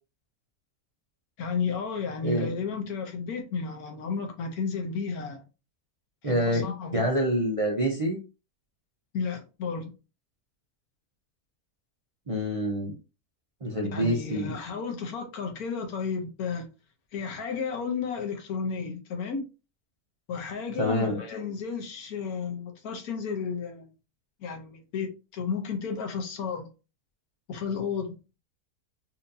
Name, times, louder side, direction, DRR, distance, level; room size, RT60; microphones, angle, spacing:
voice 1, 1.4-5.4 6.2-6.9 9.1-9.9 13.9-16.7 17.1-19.4 20.3-23.9 24.4-26.7 27.5-28.2, left 5 dB, 75° left, 1.3 m, -32 dB
voice 2, 6.2-6.6 6.9-8.2 12.3-12.9 13.6-14.5 20.8-21.2, equal, 45° right, 0.4 m, -26 dB
4.4 x 2.7 x 2.6 m
omnidirectional pair, 1.6 m